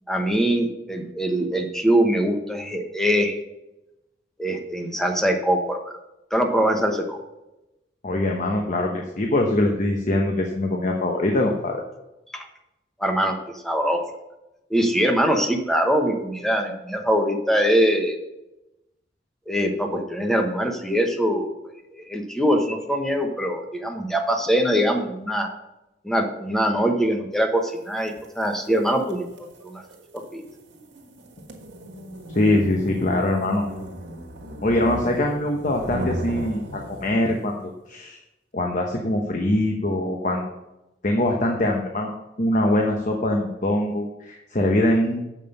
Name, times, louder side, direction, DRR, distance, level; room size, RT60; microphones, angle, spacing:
voice 1, 0.1-3.4 4.4-6.0 6.3-7.2 12.3-12.4 13.0-13.4 13.6-14.0 14.7-18.2 19.5-21.5 21.9-25.5 26.0-29.8 30.3-30.4, equal, ahead, 3 dB, 1.0 m, -23 dB
voice 2, 8.0-11.8 32.3-33.7 34.6-38.2 38.5-40.5 41.0-42.1 42.4-45.2, left 1 dB, 45° left, 2 dB, 1.0 m, -23 dB
sound 1, 28.1-37.4, equal, 75° right, 1.6 m, -36 dB
7.5 x 5.4 x 6.8 m, 0.94 s
head